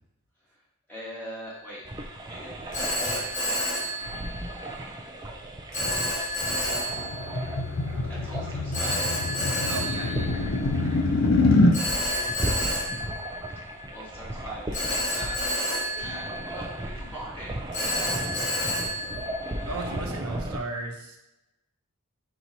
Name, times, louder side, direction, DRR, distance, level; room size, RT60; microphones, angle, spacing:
voice 1, 0.9-1.9 2.2-3.3 8.1-9.1 13.5-17.7, equal, 10° left, -8 dB, 1.3 m, -42 dB
Telephone, 1.5-1.8 2.7-4.7 5.7-7.5 8.7-10.9 11.7-14.1 14.7-17.0 17.7-19.9, left 1 dB, 35° left, 1.7 m, -30 dB
sound 1, 1.8-20.6, right 1 dB, 20° right, 0.4 m, -37 dB
sound 2, 6.5-11.8, left 2 dB, 70° left, 0.5 m, -25 dB
voice 2, 9.6-11.1 19.6-21.2, right 2 dB, 90° right, 2 dB, 0.8 m, -36 dB
4.7 x 2.8 x 4.0 m, 0.88 s
head